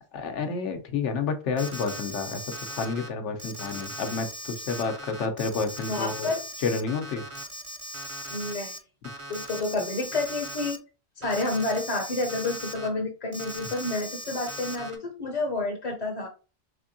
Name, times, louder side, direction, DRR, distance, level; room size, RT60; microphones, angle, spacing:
voice 1, 0.1-2.4 2.7-6.3 6.6-7.2, left 4 dB, 85° left, 6 dB, 1.0 m, -30 dB
Alarm, 1.6-3.1 3.4-8.8 9.0-10.8 11.2-12.9 13.3-15.0, equal, 40° right, 0.5 m, -39 dB
voice 2, 5.9-6.4 8.3-8.8 9.3-10.8 11.2-16.3, left 2 dB, 40° left, 0 dB, 0.6 m, -29 dB
3.5 x 3.3 x 2.6 m, 0.33 s
omnidirectional pair, 1.2 m